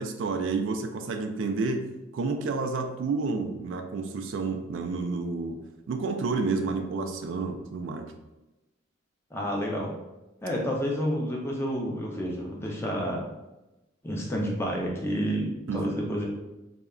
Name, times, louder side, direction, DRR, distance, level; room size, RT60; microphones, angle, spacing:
voice 1, 0.0-1.9 2.1-5.6 5.9-8.1 15.7-16.0, right 4 dB, 70° right, 6 dB, 0.3 m, -30 dB
voice 2, 9.3-9.9 10.4-13.2 14.0-16.3, equal, 10° left, -2 dB, 0.4 m, -29 dB
2.2 x 2.1 x 3.5 m, 1.0 s
head